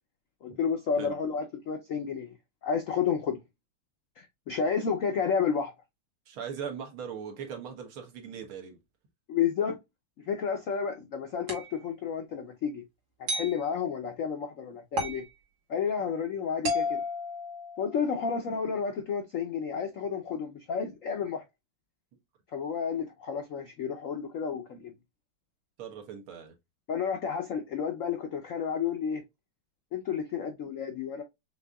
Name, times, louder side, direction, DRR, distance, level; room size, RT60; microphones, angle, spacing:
voice 1, 0.4-2.3 2.6-3.4 4.2-5.7 9.3-9.8 10.2-12.8 13.2-15.2 15.7-17.0 17.8-21.4 22.5-24.9 26.9-29.2 29.9-31.2, left 6 dB, 90° left, 0.7 m, -31 dB
voice 2, 6.3-8.8 25.8-26.5, right 7 dB, 85° right, 2.0 m, -39 dB
sound 1, 11.5-11.7 13.3-13.6 15.0-15.3 16.7-18.1, left 1 dB, 55° right, 1.8 m, -32 dB
6.6 x 2.7 x 2.2 m
omnidirectional pair, 2.3 m